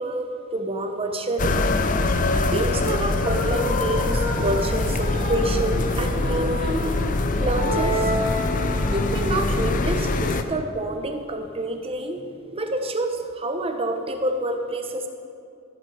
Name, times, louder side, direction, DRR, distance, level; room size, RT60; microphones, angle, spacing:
voice 1, 0.0-1.7 2.5-6.7 7.4-8.1 8.9-15.1, right 2 dB, 30° right, 5 dB, 1.0 m, -27 dB
sound 1, 1.4-10.4, left 2 dB, 40° left, 0.6 m, -24 dB
sound 2, 3.1-7.9, left 2 dB, 45° right, 2.5 m, -31 dB
sound 3, 7.5-9.2, right 1 dB, 20° left, 2.0 m, -27 dB
13.5 x 8.8 x 4.8 m, 2.4 s
head